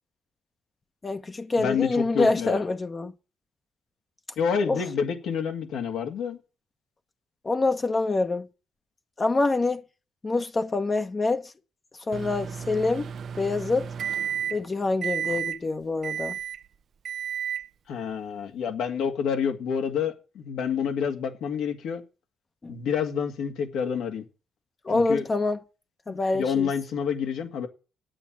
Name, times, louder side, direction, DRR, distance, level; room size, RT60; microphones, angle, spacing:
voice 1, 1.0-3.1 4.7-4.8 7.4-8.5 9.2-9.8 10.2-11.5 12.1-13.1 13.4-13.9 14.5-16.3 22.6-22.7 24.8-25.6 26.1-26.7, left 3 dB, 30° left, 0.9 m, -26 dB
voice 2, 1.6-2.6 4.4-6.4 17.9-22.0 22.7-24.2 24.9-25.3 26.1-27.7, left 7 dB, 80° left, 2.1 m, -28 dB
Microwave oven, 12.1-14.7 15.0-15.6 16.0-16.6 17.0-17.7, right 8 dB, 60° right, 0.6 m, -32 dB
8.8 x 8.5 x 8.9 m
cardioid pair, 90°, 0 cm